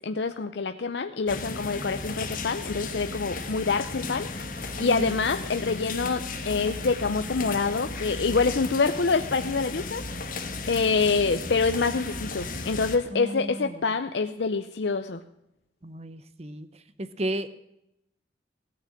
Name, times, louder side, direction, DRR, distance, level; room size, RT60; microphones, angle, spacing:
voice 1, 0.0-10.4 10.7-15.2, left 4 dB, 70° left, 8 dB, 0.6 m, -26 dB
sound 1, 1.3-13.0, left 3 dB, 45° left, 1.4 m, -35 dB
voice 2, 4.8-5.2 13.1-13.7 15.8-16.7 17.0-17.5, right 1 dB, 35° right, 13 dB, 0.8 m, -33 dB
17.0 x 6.7 x 8.5 m, 0.82 s
head